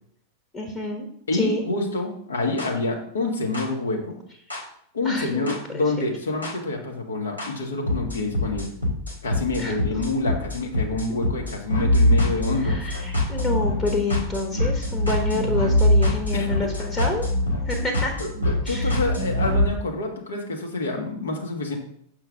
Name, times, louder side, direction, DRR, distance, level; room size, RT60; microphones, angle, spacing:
voice 1, 0.5-1.1 1.3-1.6 5.0-5.8 9.6-9.8 12.6-17.2 17.7-18.1 18.6-19.0, left 2 dB, 20° left, 1 dB, 1.2 m, -28 dB
voice 2, 1.3-4.2 4.9-8.7 9.2-13.0 16.3-16.5 18.2-21.8, left 2 dB, 70° left, 1 dB, 1.5 m, -27 dB
sound 1, 2.6-2.7 3.5-3.6 4.5-4.6 5.5-5.6 6.4-6.5 7.4-7.5 7.9-19.7, left 1 dB, 90° left, 2.2 m, -23 dB
6.9 x 5.5 x 3.5 m, 0.66 s
figure-of-eight pair, 90°, 0 cm